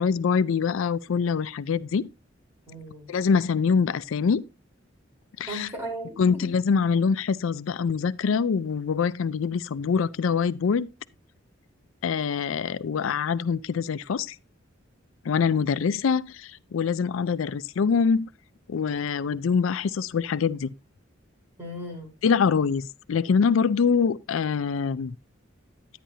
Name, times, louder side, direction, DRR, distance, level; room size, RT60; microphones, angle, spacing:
voice 1, 0.0-2.1 3.1-4.4 5.4-5.7 6.2-10.9 12.0-14.4 15.3-18.3 18.7-20.7 22.2-25.1, left 6 dB, 90° left, 0.4 m, -24 dB
voice 2, 2.7-3.1 5.5-6.5 21.6-22.1, right 1 dB, 10° right, 4.1 m, -36 dB
10.0 x 10.0 x 2.8 m
head